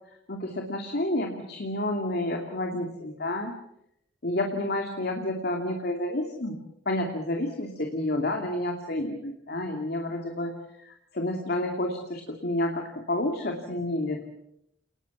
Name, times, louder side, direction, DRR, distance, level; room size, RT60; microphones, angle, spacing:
voice 1, 0.3-3.5 4.2-6.6 6.9-14.2, left 1 dB, 60° left, 2 dB, 2.6 m, -30 dB
29.5 x 20.0 x 7.2 m, 0.78 s
head